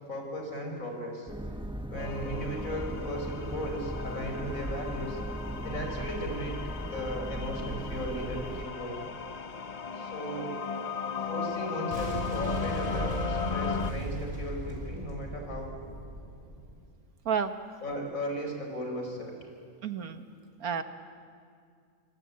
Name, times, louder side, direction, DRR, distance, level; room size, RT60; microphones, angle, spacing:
voice 1, 0.1-1.3 1.9-5.2 5.6-6.6 6.9-9.1 9.9-10.5 11.2-15.7 17.8-19.4, equal, 65° left, 2 dB, 5.3 m, -36 dB
sound 1, 1.3-8.7, right 1 dB, 5° right, 0.9 m, -37 dB
sound 2, 2.0-13.9, left 6 dB, 35° left, 0.7 m, -37 dB
Boom, 11.9-16.8, right 1 dB, 35° right, 4.7 m, -37 dB
voice 2, 19.8-20.2 20.6-20.8, right 7 dB, 75° right, 9 dB, 1.8 m, -30 dB
26.5 x 24.0 x 8.6 m, 2.2 s
omnidirectional pair, 1.5 m